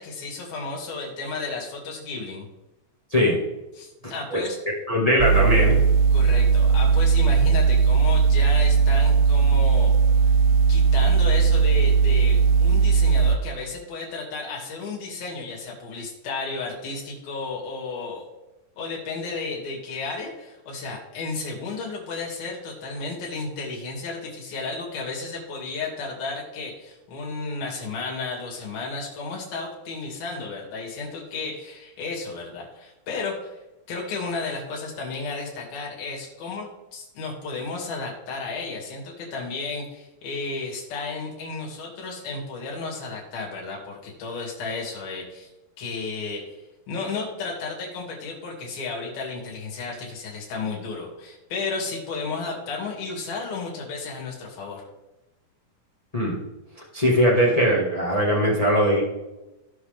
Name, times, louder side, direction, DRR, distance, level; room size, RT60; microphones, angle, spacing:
voice 1, 0.0-2.5 3.8-4.6 6.1-9.9 10.7-18.2 18.8-33.6 33.9-45.5 45.8-54.9, left 3 dB, 90° left, -3 dB, 4.3 m, -33 dB
voice 2, 4.9-5.8 56.1-56.4 56.9-59.0, equal, 45° left, -4 dB, 0.4 m, -20 dB
sound 1, 5.2-13.4, right 5 dB, 80° right, 1.6 m, -18 dB
16.5 x 5.8 x 3.5 m, 1.0 s
omnidirectional pair, 4.1 m